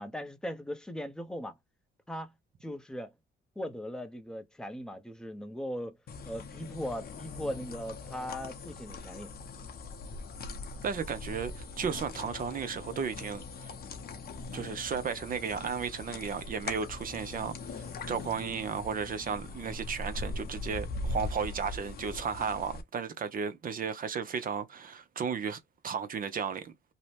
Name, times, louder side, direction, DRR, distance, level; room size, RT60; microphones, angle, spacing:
voice 1, 0.0-1.6 2.1-2.3 2.6-3.1 3.6-6.0 6.2-9.3, equal, 5° left, 0.6 m, -39 dB
sound 1, 6.1-22.8, left 3 dB, 50° left, 0.7 m, -41 dB
voice 2, 10.8-13.7 14.5-26.7, right 6 dB, 45° right, 0.6 m, -34 dB
2.7 x 2.0 x 3.1 m
cardioid pair, 90°, 20 cm